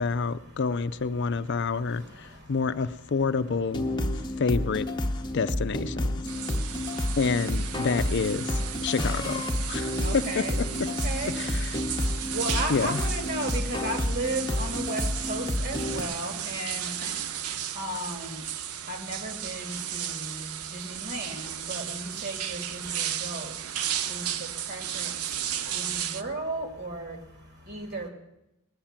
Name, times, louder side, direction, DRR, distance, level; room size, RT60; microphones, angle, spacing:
voice 1, 0.0-3.9 4.4-4.9 5.3-6.1 7.2-10.4 11.4-11.7 12.7-13.0, left 4 dB, 55° left, 12 dB, 0.5 m, -28 dB
sound 1, 3.7-16.0, left 1 dB, 20° left, 0.9 m, -30 dB
sound 2, 6.3-26.2, right 10 dB, 85° right, 0.7 m, -34 dB
voice 2, 10.0-11.4 12.3-17.2 17.7-18.4 18.9-23.5 24.1-25.1 25.7-27.2 27.7-28.1, right 1 dB, 50° right, 5 dB, 2.4 m, -35 dB
18.5 x 7.2 x 8.8 m, 0.89 s
head